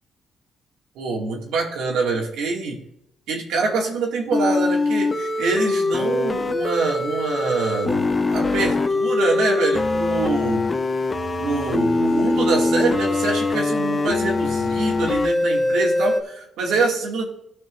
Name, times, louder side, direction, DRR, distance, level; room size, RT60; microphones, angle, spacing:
voice 1, 1.0-2.8 3.3-10.7 11.4-17.3, right 3 dB, 85° right, -1 dB, 2.4 m, -25 dB
sound 1, 4.3-16.2, left 2 dB, 30° left, 0.8 m, -22 dB
17.0 x 6.0 x 2.7 m, 0.74 s
cardioid pair, 90°, 0 cm